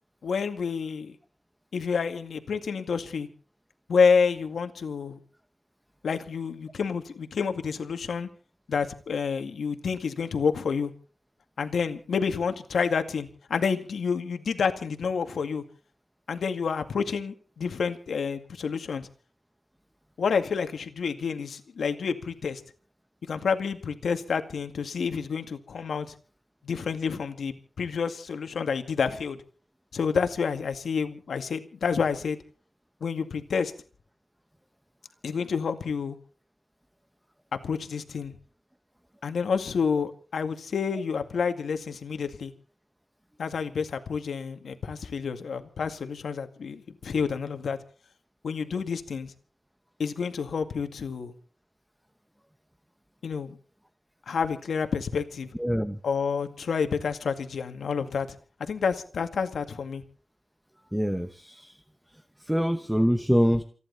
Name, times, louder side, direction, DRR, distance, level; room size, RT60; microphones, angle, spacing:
voice 1, 0.2-1.2 1.7-3.3 3.9-5.2 6.0-8.3 8.7-10.9 11.6-15.6 16.3-19.1 20.2-22.6 23.3-26.1 26.6-29.4 29.9-32.4 33.0-33.7 35.2-36.2 37.5-38.3 39.2-42.5 43.4-47.8 48.4-49.3 50.0-51.3 53.2-53.6 54.3-55.5 56.0-58.3 58.6-60.0, left 5 dB, 90° left, 7 dB, 2.1 m, -29 dB
voice 2, 55.6-56.0 60.9-61.8 62.4-63.6, equal, 5° right, 9 dB, 0.9 m, -25 dB
28.5 x 11.0 x 4.1 m, 0.40 s
wide cardioid pair, 145°, 0 cm